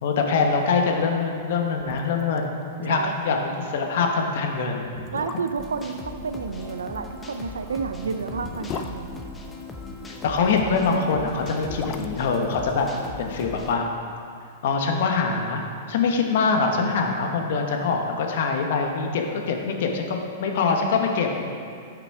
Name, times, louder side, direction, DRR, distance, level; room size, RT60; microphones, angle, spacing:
voice 1, 0.0-4.9 10.2-12.9 13.2-13.8 14.6-15.6 15.9-21.4, left 4 dB, 65° left, 2 dB, 1.3 m, -24 dB
sound 1, 1.8-2.5 2.7-2.8 3.2-3.4 4.1-4.2 4.8-5.8 7.3-10.0 11.2-13.5 13.7-13.8, left 7 dB, 35° left, 0.5 m, -38 dB
voice 2, 2.9-3.2 5.1-9.2, right 5 dB, 90° right, 8 dB, 0.5 m, -30 dB
sound 2, 5.6-13.7, left 2 dB, 15° left, 1.0 m, -39 dB
10.5 x 5.8 x 4.8 m, 2.4 s
hypercardioid pair, 120°, 0 cm